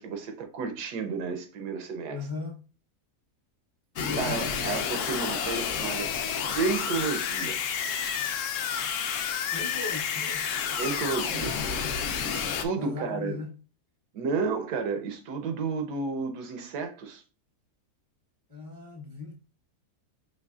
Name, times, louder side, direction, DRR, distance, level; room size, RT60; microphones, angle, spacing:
voice 1, 0.0-2.2 4.2-6.1 6.5-7.6 10.8-11.6 12.3-13.4 14.1-17.2, right 4 dB, 90° right, 1.3 m, -31 dB
voice 2, 2.1-2.6 4.0-4.3 9.5-10.5 12.7-13.6 18.5-19.3, left 4 dB, 25° left, 0.5 m, -37 dB
sound 1, 4.0-12.6, left 7 dB, 70° left, 0.8 m, -30 dB
5.0 x 3.3 x 2.3 m
omnidirectional pair, 1.7 m